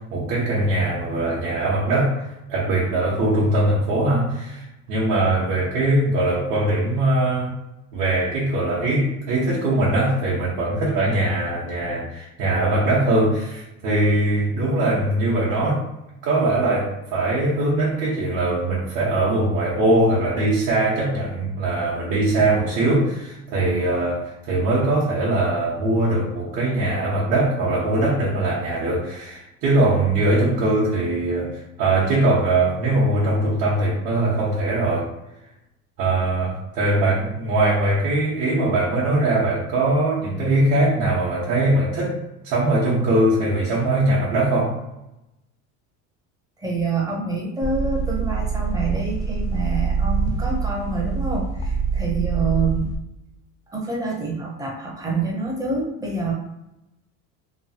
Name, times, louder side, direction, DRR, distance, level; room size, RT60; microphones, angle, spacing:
voice 1, 0.0-7.5 7.9-15.9 16.2-35.1 36.0-42.2 42.4-44.8, right 2 dB, 60° right, -6 dB, 1.0 m, -21 dB
voice 2, 46.6-52.9 53.7-56.3, right 3 dB, 10° right, -1 dB, 0.5 m, -26 dB
sound 1, 47.6-53.0, right 5 dB, 45° left, 0.5 m, -25 dB
3.0 x 2.3 x 2.7 m, 0.91 s
cardioid pair, 145°, 35 cm